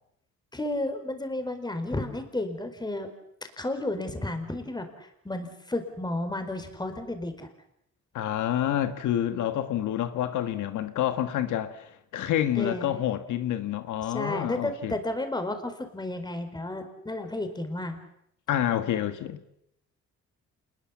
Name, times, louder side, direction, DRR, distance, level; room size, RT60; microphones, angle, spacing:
voice 1, 0.5-3.1 3.6-7.5 12.6-12.9 14.1-18.0, left 1 dB, 15° left, 4.5 m, -32 dB
voice 2, 8.1-14.9 18.5-19.4, left 11 dB, 80° left, 1.5 m, -28 dB
27.5 x 21.0 x 7.3 m
cardioid pair, 90°, 30 cm